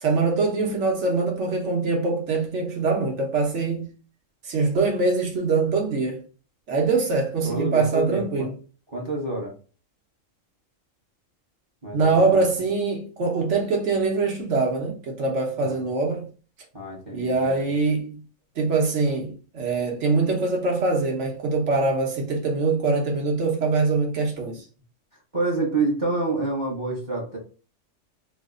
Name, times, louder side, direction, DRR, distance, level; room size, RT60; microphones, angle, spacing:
voice 1, 0.0-3.9 4.5-6.2 6.7-8.5 11.9-16.3 17.1-18.2 18.6-24.6, right 3 dB, 65° right, 1.2 m, -23 dB
voice 2, 7.4-8.5 8.9-9.5 11.8-12.6 15.6-15.9 16.7-17.7 25.3-27.4, right 2 dB, 25° right, 0.9 m, -28 dB
3.1 x 2.1 x 3.6 m
omnidirectional pair, 1.3 m